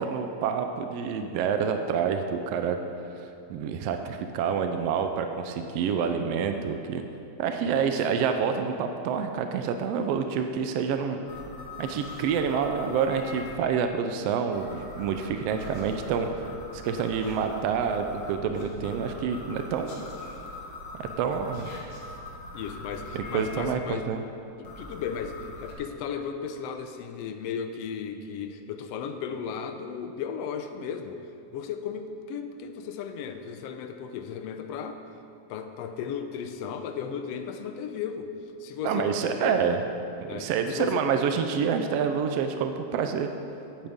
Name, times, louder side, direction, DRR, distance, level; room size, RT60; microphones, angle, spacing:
voice 1, 0.0-2.8 3.2-7.0 7.4-11.2 11.8-16.3 16.7-19.9 21.0-21.8 23.1-24.2 38.8-39.8 40.2-43.3, right 6 dB, 80° right, 6 dB, 1.4 m, -28 dB
voice 2, 7.7-8.0 15.5-15.7 22.5-24.1 24.6-35.0 35.5-38.3 38.6-39.6 40.3-41.1, left 7 dB, 80° left, 7 dB, 1.4 m, -35 dB
sound 1, 11.3-13.5 14.5-23.7 24.6-25.7, left 2 dB, 55° left, 2.2 m, -42 dB
15.0 x 8.9 x 3.6 m, 2.6 s
omnidirectional pair, 3.4 m